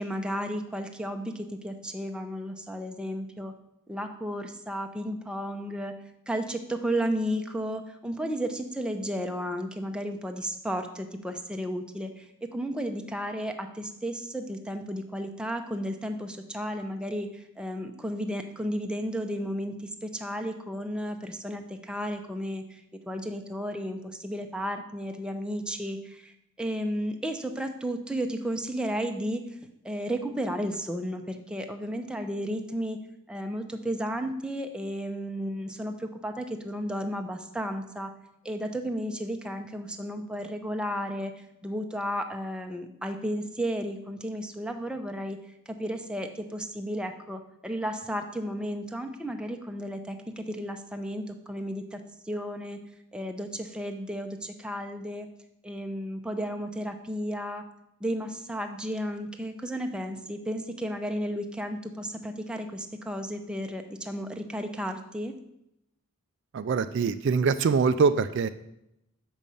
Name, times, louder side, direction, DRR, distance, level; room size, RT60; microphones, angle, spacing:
voice 1, 0.0-3.5 3.9-6.0 6.3-12.3 12.5-22.8 23.1-26.3 26.6-29.4 29.8-33.0 33.3-38.1 38.4-41.3 41.6-45.4 45.7-52.8 53.1-55.3 55.6-57.6 58.0-65.3, equal, 5° right, 4 dB, 0.6 m, -33 dB
voice 2, 66.5-68.5, right 5 dB, 55° right, 11 dB, 0.3 m, -24 dB
6.2 x 5.3 x 6.9 m, 0.82 s
head